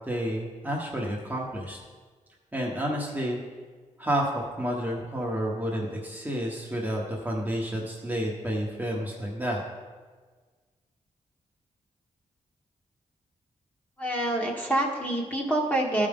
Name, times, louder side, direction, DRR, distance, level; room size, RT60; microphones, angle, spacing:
voice 1, 0.1-1.8 2.5-3.4 4.0-9.6, equal, 10° right, -3 dB, 1.1 m, -30 dB
voice 2, 14.0-16.1, right 1 dB, 10° left, -1 dB, 1.4 m, -26 dB
13.0 x 5.0 x 3.6 m, 1.5 s
cardioid pair, 95°, 13 cm